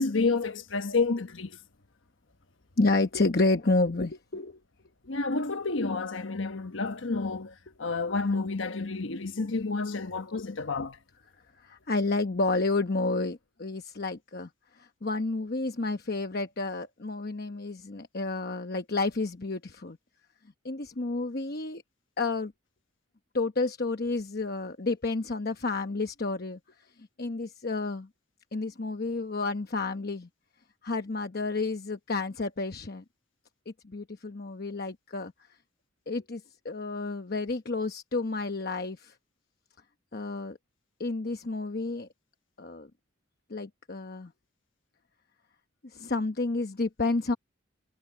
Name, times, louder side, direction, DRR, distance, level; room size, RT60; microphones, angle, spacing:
voice 1, 0.0-1.6 5.1-11.0, left 3 dB, 75° left, 1.1 m, -30 dB
voice 2, 2.8-4.6 11.6-14.5 14.8-20.0 20.6-21.8 22.2-22.5 23.3-26.6 27.2-28.1 28.5-30.3 30.8-33.0 33.7-35.3 36.1-39.1 40.1-40.6 41.0-42.1 42.6-42.9 43.5-44.3 45.9-47.4, left 3 dB, 50° left, 1.0 m, -30 dB
head